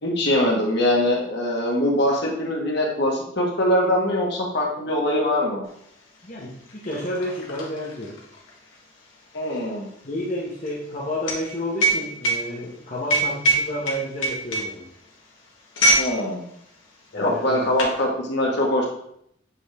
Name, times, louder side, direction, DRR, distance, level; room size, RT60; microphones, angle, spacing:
voice 1, 0.0-5.6 9.3-9.9 16.0-16.4 17.1-18.8, left 1 dB, 60° left, -2 dB, 1.6 m, -22 dB
sound 1, 5.8-5.9 6.2-16.1 16.4-16.7 17.3-18.0, right 1 dB, 85° left, 1.6 m, -24 dB
voice 2, 6.2-8.2 10.0-14.9 17.1-17.7, equal, 40° left, -6 dB, 1.1 m, -31 dB
8.4 x 3.6 x 3.5 m, 0.69 s
head